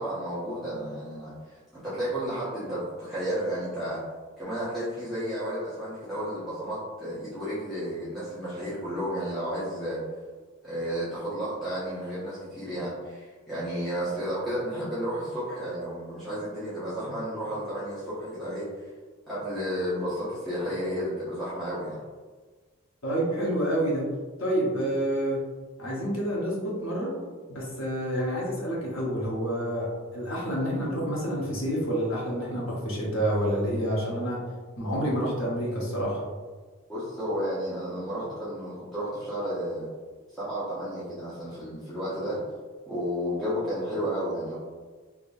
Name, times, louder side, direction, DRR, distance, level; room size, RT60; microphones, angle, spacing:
voice 1, 0.0-4.0 4.4-10.0 10.6-18.7 19.3-22.0 36.9-39.9 40.3-42.4 42.9-44.5, equal, ahead, -14 dB, 0.9 m, -32 dB
voice 2, 23.0-24.1 24.4-25.4 25.8-27.1 27.5-34.4 34.8-36.2, equal, 70° left, -4 dB, 1.0 m, -28 dB
3.6 x 2.9 x 2.6 m, 1.4 s
head